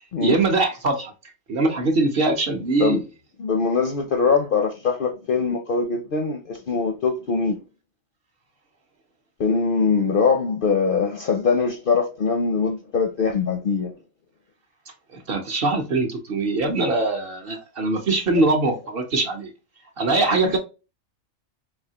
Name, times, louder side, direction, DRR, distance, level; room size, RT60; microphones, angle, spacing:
voice 1, 0.2-1.1 1.5-3.1 15.1-19.5 20.0-20.6, right 3 dB, 55° right, 0.8 m, -22 dB
voice 2, 3.4-7.6 9.4-13.9 20.4-20.6, left 5 dB, 60° left, 0.6 m, -22 dB
4.1 x 2.7 x 2.8 m
omnidirectional pair, 1.4 m